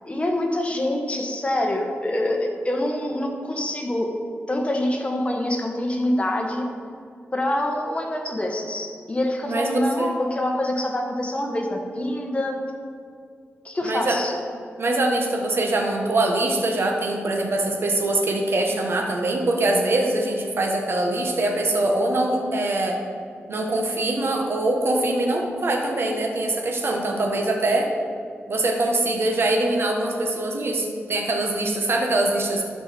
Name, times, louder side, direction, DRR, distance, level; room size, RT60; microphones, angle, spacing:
voice 1, 0.0-4.1 4.5-6.7 7.3-12.6 13.6-14.4, left 1 dB, 25° left, 2 dB, 1.4 m, -25 dB
voice 2, 13.8-14.2 14.8-23.0 23.5-27.9 28.5-32.6, right 2 dB, 60° right, 1 dB, 1.4 m, -23 dB
12.0 x 5.4 x 4.5 m, 2.3 s
cardioid pair, 70°, 4 cm